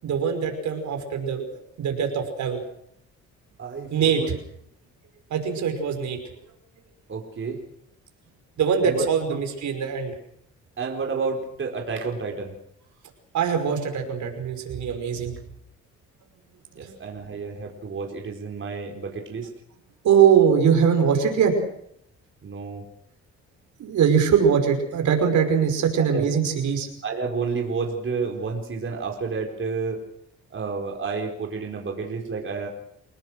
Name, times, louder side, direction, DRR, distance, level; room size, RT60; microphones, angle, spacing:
voice 1, 0.0-1.4 1.8-2.6 3.9-4.4 5.3-6.2 8.6-10.1 13.3-15.3 16.7-16.9 20.0-21.5 23.8-26.9, right 7 dB, 70° right, 4 dB, 5.7 m, -22 dB
voice 2, 3.6-4.3 7.1-7.6 8.8-9.4 10.8-12.5 16.7-19.5 22.4-22.8 26.1-26.3 27.0-30.0 30.5-32.7, right 4 dB, 40° right, 0 dB, 4.7 m, -30 dB
29.0 x 18.5 x 6.5 m, 0.71 s
cardioid pair, 90°, 30 cm